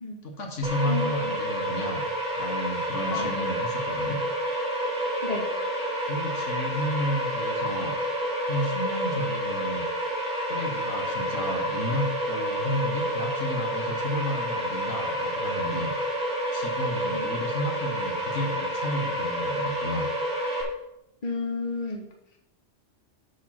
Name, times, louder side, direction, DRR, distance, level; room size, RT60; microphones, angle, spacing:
voice 1, 0.2-2.0 2.4-4.2 6.1-7.9 8.5-9.8 10.5-15.9 16.5-20.1, left 1 dB, 75° left, 2 dB, 1.7 m, -32 dB
sound 1, 0.6-20.6, equal, 5° right, 2.1 m, -29 dB
voice 2, 0.9-1.2 3.1-3.3 5.2-5.5 17.1-17.2 21.2-22.1, left 3 dB, 35° left, 2 dB, 1.3 m, -31 dB
8.2 x 5.1 x 5.8 m, 0.84 s
omnidirectional pair, 1.3 m